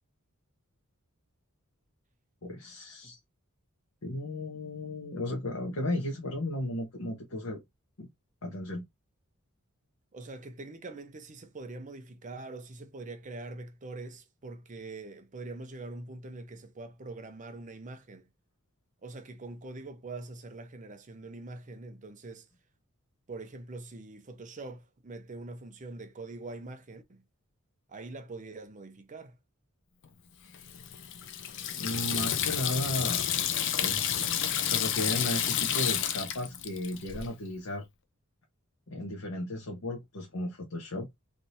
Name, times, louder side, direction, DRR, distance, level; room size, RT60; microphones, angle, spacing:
voice 1, 2.4-3.2 4.0-7.6 8.0-8.1 8.4-8.8 31.8-33.3 33.8-34.3 34.6-37.8 38.9-41.1, left 1 dB, 75° left, 1.0 m, -35 dB
voice 2, 10.1-18.2 19.0-22.5 23.3-27.2 27.9-29.4, right 2 dB, 35° right, 0.6 m, -43 dB
Water tap faucet / Sink (filling or washing), 30.5-37.3, left 9 dB, 60° left, 0.5 m, -30 dB
3.3 x 2.7 x 2.8 m
head